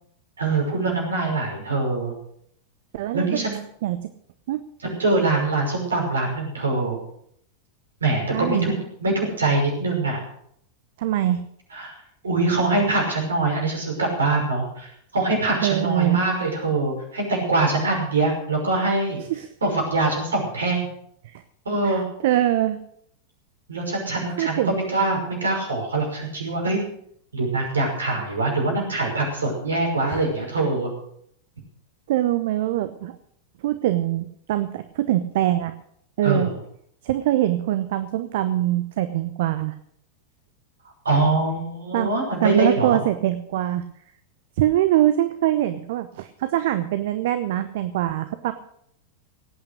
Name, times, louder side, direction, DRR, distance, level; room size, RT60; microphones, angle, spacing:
voice 1, 0.4-2.1 3.1-3.6 4.8-7.0 8.0-10.2 11.7-12.0 12.2-19.2 19.6-20.9 21.7-22.0 23.7-26.8 27.3-30.9 36.2-36.5 41.0-43.0, right 2 dB, 70° right, 1 dB, 5.6 m, -23 dB
voice 2, 2.9-3.3 3.8-4.0 4.5-4.6 8.3-8.7 11.0-11.4 15.6-16.2 19.3-19.5 21.2-21.4 21.8-22.8 24.4-24.8 30.1-30.2 32.1-33.2 33.6-35.7 36.2-36.5 37.0-39.7 41.9-42.1 42.4-43.8 44.6-48.5, right 13 dB, 55° right, 11 dB, 0.8 m, -23 dB
18.0 x 8.9 x 6.4 m, 0.69 s
figure-of-eight pair, 90°, 0 cm